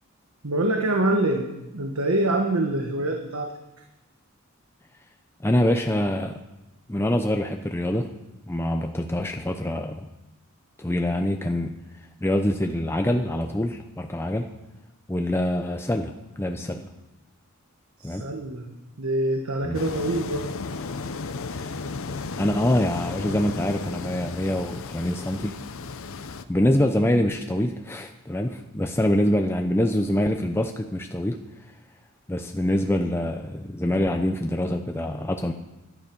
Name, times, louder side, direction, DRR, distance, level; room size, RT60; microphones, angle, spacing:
voice 1, 0.4-3.5 18.0-18.7 19.0-20.4, right 1 dB, 80° right, 3 dB, 1.3 m, -25 dB
voice 2, 5.4-6.3 6.9-8.1 8.5-10.0 10.8-11.8 12.2-14.5 15.1-16.9 18.0-18.2 19.6-19.8 21.5-21.7 22.4-25.5 26.5-31.4 32.3-35.5, left 1 dB, 10° left, 4 dB, 0.6 m, -25 dB
sound 1, 19.7-26.4, left 4 dB, 65° left, 0.6 m, -34 dB
12.5 x 11.5 x 5.3 m, 0.96 s
head